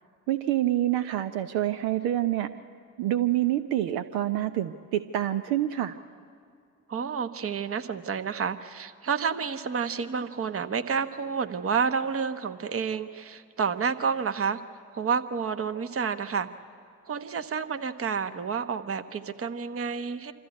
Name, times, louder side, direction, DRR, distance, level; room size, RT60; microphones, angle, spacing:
voice 1, 0.3-2.5 3.0-6.0, right 13 dB, 65° right, 10 dB, 0.7 m, -27 dB
voice 2, 6.9-14.6 14.9-16.5 17.1-20.3, right 6 dB, 35° right, 10 dB, 1.2 m, -29 dB
26.0 x 14.0 x 8.5 m, 2.4 s
hypercardioid pair, 55°, 40 cm